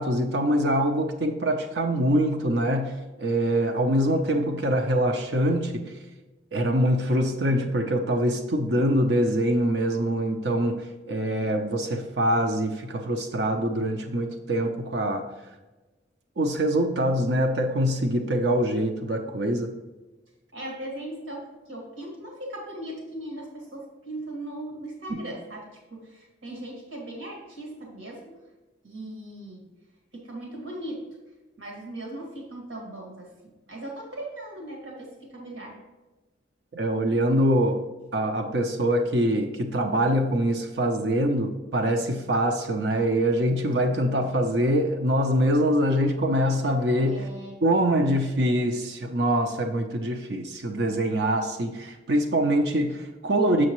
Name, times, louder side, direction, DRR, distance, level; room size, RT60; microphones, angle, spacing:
voice 1, 0.0-5.8 6.5-15.2 16.4-19.7 36.7-37.8 38.1-47.3 47.6-53.7, equal, 60° right, 4 dB, 0.6 m, -24 dB
voice 2, 20.5-28.4 28.8-29.6 30.1-31.1 31.6-33.3 33.7-35.8 47.1-47.9, right 1 dB, 80° right, -1 dB, 1.9 m, -38 dB
6.4 x 6.2 x 3.0 m, 1.1 s
head